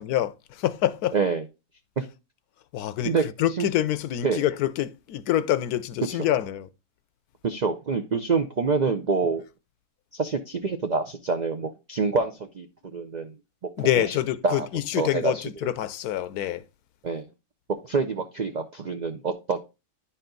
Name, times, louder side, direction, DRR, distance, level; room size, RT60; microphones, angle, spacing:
voice 1, 0.0-1.2 2.7-6.7 13.8-16.6, left 12 dB, 80° left, 1.1 m, -26 dB
voice 2, 1.1-1.4 2.0-2.1 3.0-3.2 3.6-3.7 4.2-4.4 6.1-6.2 7.4-9.4 10.1-12.7 12.9-13.3 13.6-14.2 14.4-14.7 15.0-15.4 17.0-17.3 17.8-19.6, right 4 dB, 85° right, 0.4 m, -26 dB
10.0 x 4.3 x 3.9 m
omnidirectional pair, 1.6 m